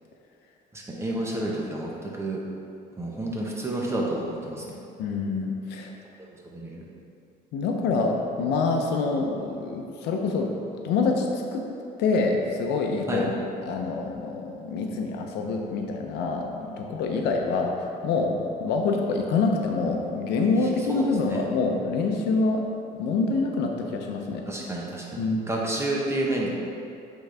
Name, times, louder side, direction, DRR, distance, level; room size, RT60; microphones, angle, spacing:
voice 1, 0.7-2.4 3.0-4.8 6.2-6.8 13.1-13.2 16.8-16.9 20.9-21.4 24.5-26.5, right 1 dB, 15° right, -3 dB, 1.1 m, -30 dB
voice 2, 5.0-5.9 7.5-10.5 10.8-11.6 12.0-13.3 13.6-22.6 22.9-24.4 25.2-25.5, left 3 dB, 85° left, 2 dB, 0.7 m, -26 dB
8.0 x 4.0 x 3.4 m, 2.6 s
cardioid pair, 110°, 17 cm